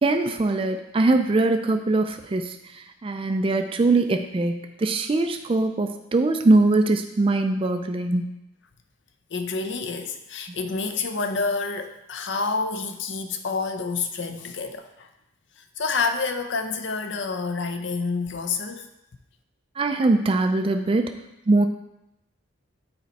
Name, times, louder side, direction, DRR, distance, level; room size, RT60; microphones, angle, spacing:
voice 1, 0.0-8.2 19.8-21.1 21.5-21.7, right 2 dB, 25° right, 6 dB, 0.3 m, -22 dB
voice 2, 9.3-15.1 15.6-18.9, left 4 dB, 60° left, 8 dB, 0.6 m, -28 dB
8.8 x 4.3 x 4.1 m, 0.89 s
head